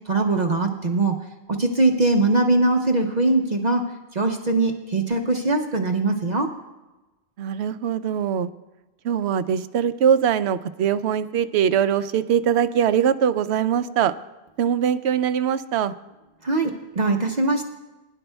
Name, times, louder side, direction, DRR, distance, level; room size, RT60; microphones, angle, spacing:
voice 1, 0.1-1.2 1.5-3.8 4.1-6.5 16.4-17.7, right 2 dB, 45° right, 3 dB, 0.8 m, -21 dB
voice 2, 7.4-8.5 9.0-14.1 14.6-15.9, right 8 dB, 85° right, 13 dB, 0.8 m, -22 dB
21.5 x 11.0 x 2.2 m, 1.1 s
omnidirectional pair, 1.1 m